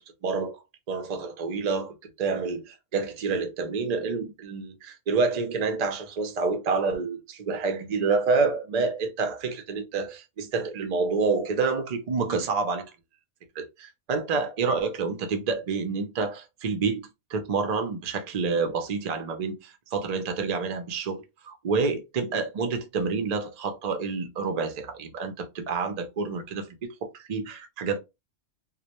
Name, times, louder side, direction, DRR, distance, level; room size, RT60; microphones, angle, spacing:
voice 1, 0.2-0.6 0.9-12.9 13.5-28.0, right 4 dB, 50° right, 0.5 m, -28 dB
2.2 x 2.1 x 2.8 m
omnidirectional pair, 1.3 m